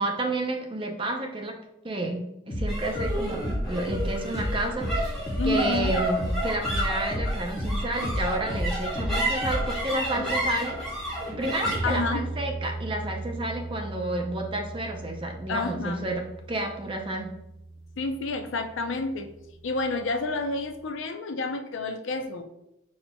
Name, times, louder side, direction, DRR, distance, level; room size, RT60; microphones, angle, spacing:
voice 1, 0.0-1.6 1.8-10.8 11.4-16.2 16.5-17.3, right 2 dB, 25° right, 3 dB, 0.5 m, -31 dB
sound 1, 2.5-12.1, equal, 30° left, 1.0 m, -32 dB
sound 2, 2.7-19.2, right 1 dB, ahead, 1.6 m, -33 dB
voice 2, 5.4-5.9 11.8-12.3 15.5-16.1 18.0-19.3 19.6-22.4, left 3 dB, 70° left, 6 dB, 0.5 m, -29 dB
5.6 x 4.2 x 2.2 m, 0.85 s
head